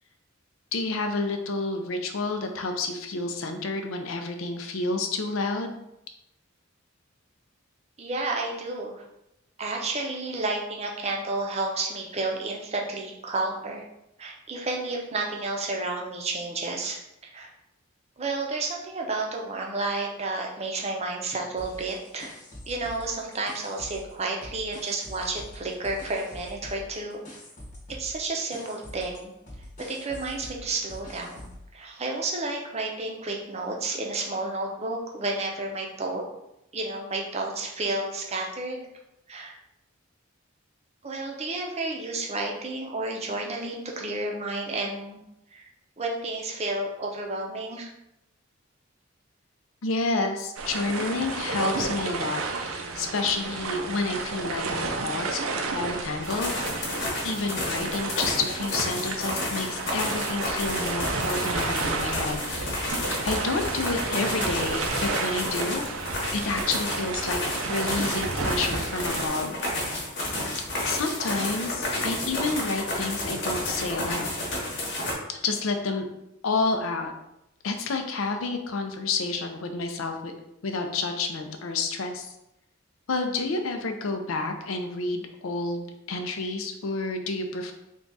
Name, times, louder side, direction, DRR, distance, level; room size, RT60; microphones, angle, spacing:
voice 1, 0.7-5.7 49.8-56.5 57.2-65.8 66.3-67.4 67.7-69.6 70.8-74.8 75.3-76.1 76.4-77.1 77.6-80.3 80.6-82.3 83.1-87.7, left 3 dB, 75° left, 5 dB, 0.5 m, -30 dB
voice 2, 8.0-9.0 9.6-13.8 14.2-17.0 17.3-17.5 18.2-22.3 22.7-27.2 27.9-29.3 29.8-36.2 36.7-38.8 39.3-39.6 41.0-45.2 45.5-45.7 46.0-47.9, right 2 dB, 30° right, 0 dB, 0.6 m, -31 dB
sound 1, 21.6-24.1 24.4-31.7, left 1 dB, 40° left, 1.0 m, -44 dB
sound 2, 50.6-69.3, right 4 dB, 80° right, 0.5 m, -32 dB
sound 3, 56.2-75.1, left 1 dB, 60° left, 1.1 m, -31 dB
3.5 x 2.3 x 3.9 m, 0.84 s
head